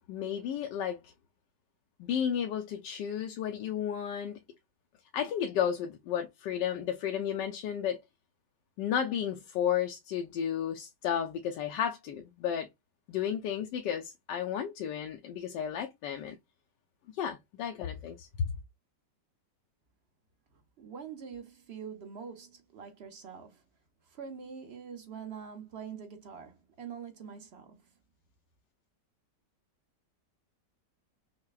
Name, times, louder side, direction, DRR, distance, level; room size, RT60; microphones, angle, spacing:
voice 1, 0.1-1.1 2.0-4.4 5.1-8.0 8.8-12.7 13.1-16.4 17.2-18.5, left 9 dB, 85° left, 1.2 m, -33 dB
voice 2, 20.5-23.6 24.1-27.9, right 7 dB, 55° right, 0.7 m, -45 dB
5.6 x 2.2 x 2.3 m
omnidirectional pair, 1.9 m